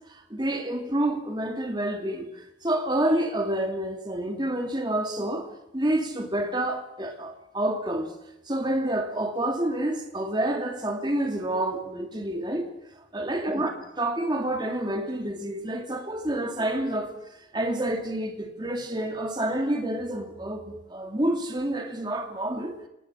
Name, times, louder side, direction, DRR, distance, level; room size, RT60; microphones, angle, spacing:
voice 1, 0.1-8.1 8.5-12.7 13.1-17.2 17.5-22.8, right 1 dB, 25° right, 2.6 m, -28 dB
29.0 x 19.5 x 6.4 m
head